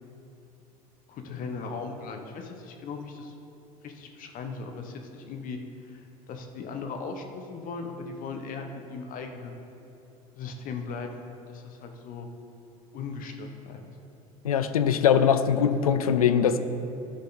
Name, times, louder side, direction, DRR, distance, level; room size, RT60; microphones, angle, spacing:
voice 1, 1.1-3.3 3.8-9.6 10.3-12.3 12.9-13.8, left 4 dB, 50° left, 4 dB, 1.0 m, -38 dB
voice 2, 14.4-16.6, left 8 dB, 85° left, 11 dB, 0.4 m, -22 dB
12.0 x 5.6 x 4.0 m, 2.8 s
hypercardioid pair, 70°, 18 cm